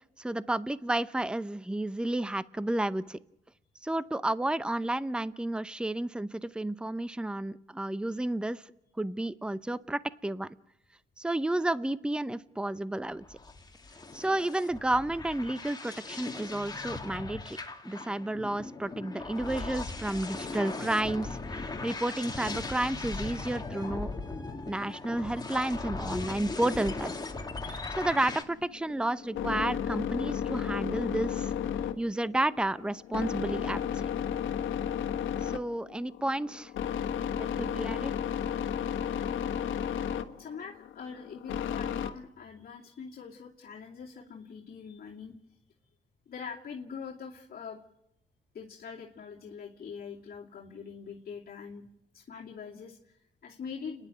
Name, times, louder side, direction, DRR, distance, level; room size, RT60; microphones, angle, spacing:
voice 1, 0.2-3.2 3.8-8.6 9.0-10.5 11.2-13.2 14.1-17.6 17.8-24.1 24.7-27.1 27.7-31.5 32.0-34.1 35.4-36.7 37.4-38.1, right 1 dB, 5° right, 15 dB, 0.7 m, -31 dB
sound 1, 13.2-28.4, left 3 dB, 20° left, 2.3 m, -38 dB
sound 2, 28.5-42.1, left 9 dB, 80° left, 1.6 m, -33 dB
voice 2, 39.2-39.9 40.4-45.3 46.3-47.8 48.5-51.8 52.1-54.1, left 6 dB, 50° left, -3 dB, 2.6 m, -43 dB
30.0 x 11.0 x 9.2 m, 0.85 s
cardioid pair, 90°, 20 cm